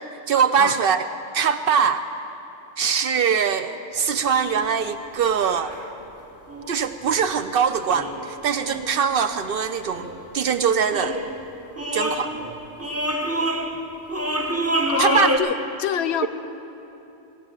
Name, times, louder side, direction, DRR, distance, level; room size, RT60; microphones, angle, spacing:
voice 1, 0.3-1.0 1.3-2.0 2.8-5.7 6.7-10.1 10.3-11.2 11.9-12.3 15.0-15.3, right 7 dB, 60° right, 10 dB, 0.7 m, -22 dB
sound 1, 4.0-4.1 4.4-4.9 5.7-5.9 6.5-7.3 7.8-9.1 9.9-10.3 10.9-11.5 11.8-15.4, right 1 dB, 15° right, 0.8 m, -27 dB
Meow, 5.1-6.0, right 4 dB, 90° right, 1.5 m, -42 dB
voice 2, 14.9-16.3, left 8 dB, 70° left, 12 dB, 0.8 m, -25 dB
17.5 x 7.2 x 8.7 m, 3.0 s
omnidirectional pair, 1.2 m